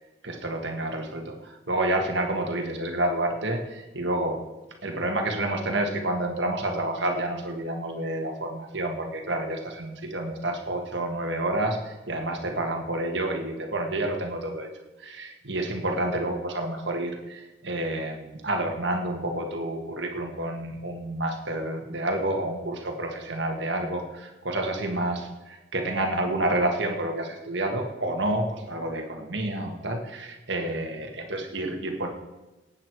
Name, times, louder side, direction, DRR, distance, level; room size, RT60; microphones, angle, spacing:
voice 1, 0.2-4.4 4.8-14.7 15.0-25.3 25.7-32.1, right 1 dB, 60° right, 2 dB, 1.7 m, -29 dB
18.5 x 8.7 x 4.7 m, 1.1 s
head